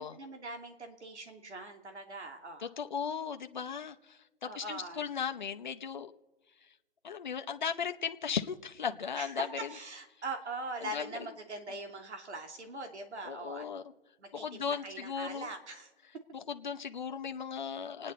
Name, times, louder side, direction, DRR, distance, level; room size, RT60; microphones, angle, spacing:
voice 1, 0.0-2.7 4.4-5.1 9.2-13.6 14.2-15.9, right 2 dB, 70° right, 5 dB, 2.7 m, -42 dB
voice 2, 2.6-6.1 7.0-9.7 10.8-11.2 13.2-13.8 14.3-15.5 16.3-18.1, left 7 dB, 40° left, 7 dB, 0.7 m, -37 dB
29.0 x 9.8 x 4.1 m, 1.2 s
hypercardioid pair, 175°, 35 cm